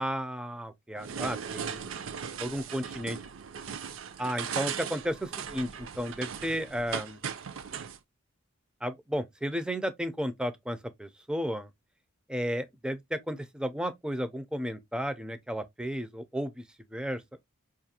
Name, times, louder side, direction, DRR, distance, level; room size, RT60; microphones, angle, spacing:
voice 1, 0.0-1.9 2.4-3.2 4.2-7.2 8.8-11.7 12.3-16.6 16.9-17.2, equal, 5° right, 0.3 m, -33 dB
sound 1, 1.0-8.0, right 7 dB, 65° right, 0.5 m, -38 dB
5.0 x 2.4 x 2.7 m
head